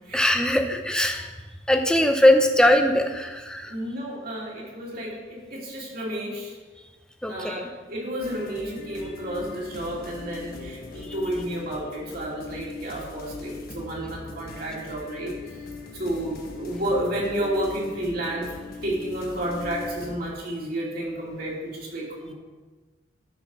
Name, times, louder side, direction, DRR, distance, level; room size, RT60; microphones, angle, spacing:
voice 1, 0.1-1.3 1.7-3.7 7.2-7.6 11.0-11.1, left 1 dB, 5° left, 4 dB, 0.7 m, -21 dB
voice 2, 3.7-6.5 7.3-15.3 15.9-18.6 18.8-22.3, right 1 dB, 50° right, -4 dB, 2.9 m, -31 dB
sound 1, 8.2-20.2, left 3 dB, 50° left, 1.3 m, -40 dB
13.0 x 4.8 x 6.2 m, 1.3 s
head